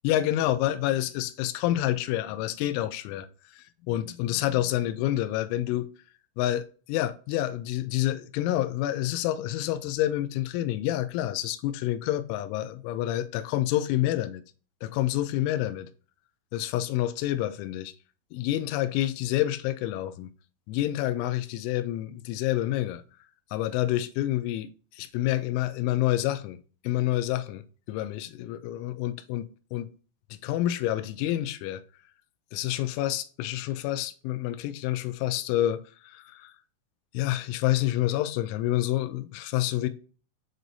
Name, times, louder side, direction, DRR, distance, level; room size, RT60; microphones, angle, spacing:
voice 1, 0.0-3.3 3.5-5.9 6.4-14.4 14.8-15.9 16.5-17.9 18.3-20.3 20.7-23.0 23.5-26.6 26.8-27.6 27.9-29.9 30.3-31.8 32.5-36.5 37.1-39.9, left 14 dB, 85° left, 2.8 m, -28 dB
7.4 x 2.6 x 2.6 m
omnidirectional pair, 5.7 m